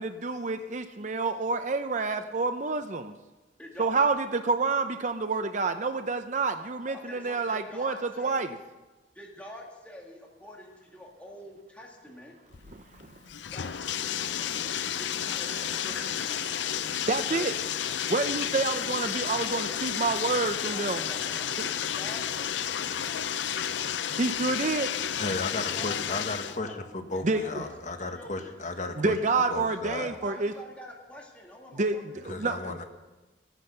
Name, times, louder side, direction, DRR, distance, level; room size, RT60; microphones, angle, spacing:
voice 1, 0.0-3.1 3.8-8.5 12.7-13.1 15.4-17.5 18.1-21.0 21.6-21.7 24.2-24.9 27.2-27.6 29.0-30.5 31.7-32.6, right 3 dB, 40° right, 8 dB, 0.6 m, -29 dB
voice 2, 3.6-4.0 6.9-8.5 9.1-12.4 13.5-16.2 19.0-20.1 20.7-23.3 25.4-26.8 27.1-28.6 29.9-32.9, left 1 dB, 10° left, -2 dB, 2.1 m, -47 dB
Bathtub (filling or washing), 12.5-26.6, left 9 dB, 80° left, 0.6 m, -31 dB
voice 3, 25.1-29.2 29.5-30.1 32.3-32.8, left 3 dB, 40° left, 6 dB, 1.3 m, -34 dB
14.5 x 9.9 x 6.6 m, 1.2 s
head